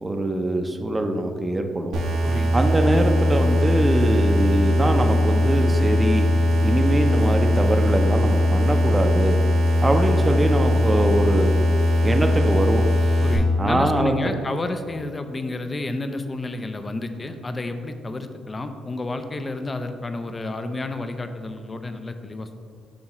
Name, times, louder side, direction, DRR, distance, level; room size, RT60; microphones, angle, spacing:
voice 1, 0.0-2.0 2.5-6.3 6.6-9.4 9.8-11.5 12.0-12.8 13.6-14.1, right 1 dB, 20° right, 5 dB, 0.6 m, -23 dB
sound 1, 1.9-13.4, left 1 dB, 90° right, 1.1 m, -20 dB
voice 2, 13.2-22.6, left 2 dB, 25° left, 8 dB, 0.5 m, -30 dB
7.3 x 5.4 x 3.0 m, 2.3 s
cardioid pair, 90°, 0 cm